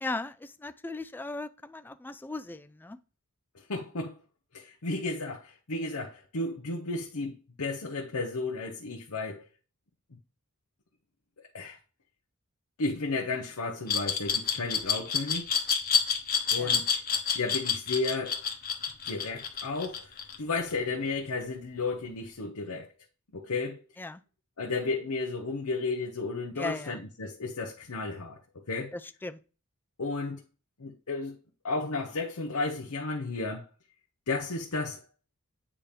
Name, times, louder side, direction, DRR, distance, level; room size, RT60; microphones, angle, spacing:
voice 1, 0.0-3.0 16.6-16.8 24.0-24.2 26.6-27.0 28.9-29.4, left 2 dB, 10° left, 0.3 m, -37 dB
voice 2, 3.7-4.1 4.5-9.5 11.4-11.8 12.8-15.5 16.5-17.0 17.3-18.4 19.0-22.9 23.3-23.8 24.6-28.9 30.0-30.4 30.8-31.3 31.6-33.7 34.3-35.0, left 3 dB, 75° left, 0.9 m, -33 dB
Glass, 13.9-20.7, left 6 dB, 40° left, 1.1 m, -28 dB
8.7 x 3.0 x 5.1 m
head